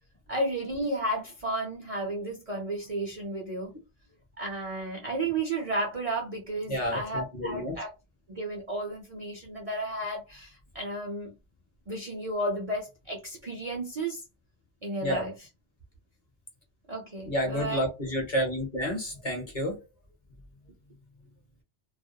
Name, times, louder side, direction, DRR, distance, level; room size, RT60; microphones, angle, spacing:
voice 1, 0.3-3.7 4.4-7.9 8.3-11.3 11.9-14.2 14.8-15.3 16.9-17.8, right 1 dB, 40° right, 0.5 m, -33 dB
voice 2, 6.7-7.8 15.0-15.3 17.2-19.8, equal, 40° left, 0.9 m, -30 dB
2.4 x 2.1 x 2.7 m
omnidirectional pair, 1.2 m